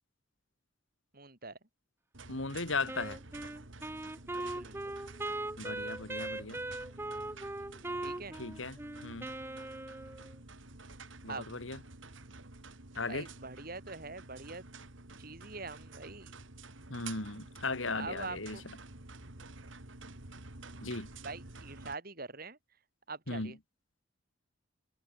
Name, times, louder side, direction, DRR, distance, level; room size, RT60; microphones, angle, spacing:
voice 1, 1.1-1.6 4.4-4.9 8.0-8.4 11.3-11.5 13.1-14.6 15.2-16.3 17.9-18.6 21.2-22.6 23.1-23.6, right 3 dB, 50° right, 4.7 m, -44 dB
sound 1, 2.1-21.9, right 3 dB, 75° right, 2.7 m, -50 dB
voice 2, 2.3-3.2 5.6-6.6 8.4-8.8 9.0-9.3 11.2-11.8 13.0-13.3 16.9-18.6 20.8-21.1 23.3-23.6, left 3 dB, 80° left, 4.0 m, -37 dB
Wind instrument woodwind instrument, 2.9-10.4, right 2 dB, 10° right, 0.7 m, -40 dB
head